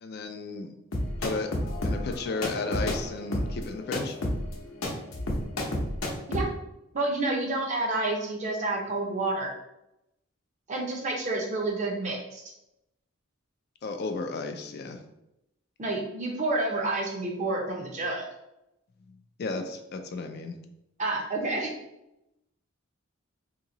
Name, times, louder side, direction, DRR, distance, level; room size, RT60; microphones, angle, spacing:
voice 1, 0.0-0.7 1.2-1.5 1.8-4.2 13.8-15.0 19.4-20.6, left 3 dB, 50° left, 6 dB, 0.4 m, -33 dB
sound 1, 0.9-6.4, left 1 dB, 75° left, 0.7 m, -31 dB
voice 2, 6.9-9.5 10.7-12.4 15.8-18.3 21.0-21.7, right 2 dB, 35° right, 0 dB, 0.6 m, -29 dB
2.9 x 2.7 x 3.8 m, 0.88 s
head